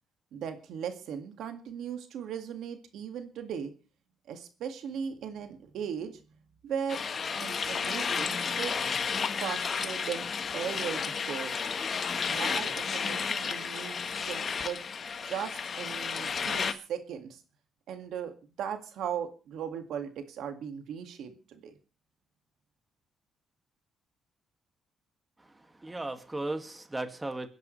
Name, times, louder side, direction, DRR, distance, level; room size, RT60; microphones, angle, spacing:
voice 1, 0.3-3.7 4.3-6.2 6.6-7.0 7.4-8.9 9.4-10.3 10.5-11.5 12.3-14.8 15.3-17.4 17.9-18.3 18.6-21.7, right 8 dB, 80° right, 7 dB, 2.0 m, -38 dB
sound 1, 6.9-16.7, left 6 dB, 45° left, 1.3 m, -32 dB
voice 2, 25.4-27.5, right 2 dB, 15° right, 7 dB, 2.1 m, -36 dB
28.5 x 10.5 x 3.2 m, 0.36 s
cardioid pair, 90°, 0 cm